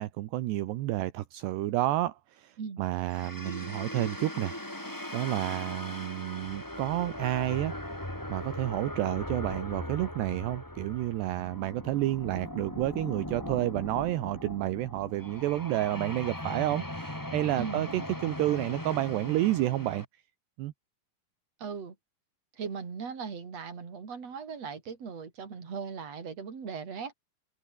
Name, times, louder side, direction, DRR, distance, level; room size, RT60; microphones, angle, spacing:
voice 1, 0.0-2.5 2.8-4.6 5.1-7.7 8.3-20.0 20.6-20.7, right 15 dB, 75° right, 3.1 m, -30 dB
sound 1, 3.1-20.0, left 1 dB, 5° left, 2.4 m, -39 dB
voice 2, 17.6-17.9 21.6-21.9 22.6-27.1, right 6 dB, 35° right, 4.7 m, -38 dB
open air
omnidirectional pair, 5.2 m